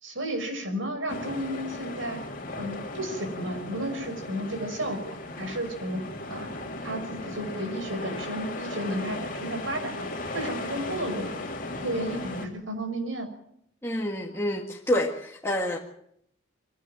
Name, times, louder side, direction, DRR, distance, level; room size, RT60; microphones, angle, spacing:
voice 1, 0.0-2.2 2.6-6.0 6.3-6.5 6.8-10.1 10.3-11.5 11.8-13.3, right 1 dB, 85° right, 5 dB, 5.8 m, -33 dB
sound 1, 1.1-12.5, left 2 dB, 45° left, 3.3 m, -36 dB
voice 2, 13.8-15.8, left 1 dB, 15° left, -1 dB, 1.8 m, -28 dB
23.5 x 16.0 x 7.4 m, 0.72 s
head